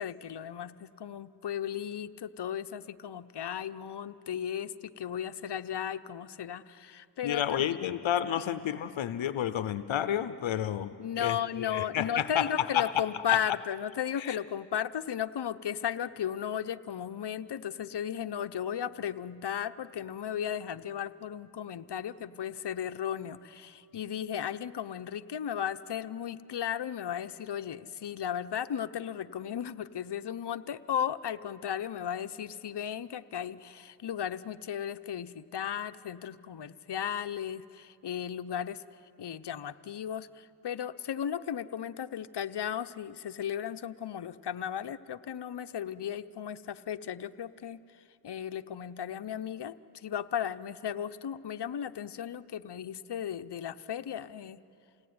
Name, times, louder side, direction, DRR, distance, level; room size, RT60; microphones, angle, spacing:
voice 1, 0.0-7.7 8.4-8.5 11.0-38.8 39.2-54.6, left 9 dB, 60° left, 10 dB, 0.9 m, -35 dB
voice 2, 7.2-12.9 14.2-14.4, left 10 dB, 85° left, 13 dB, 0.8 m, -31 dB
28.5 x 18.0 x 9.6 m, 2.5 s
cardioid pair, 45°, 46 cm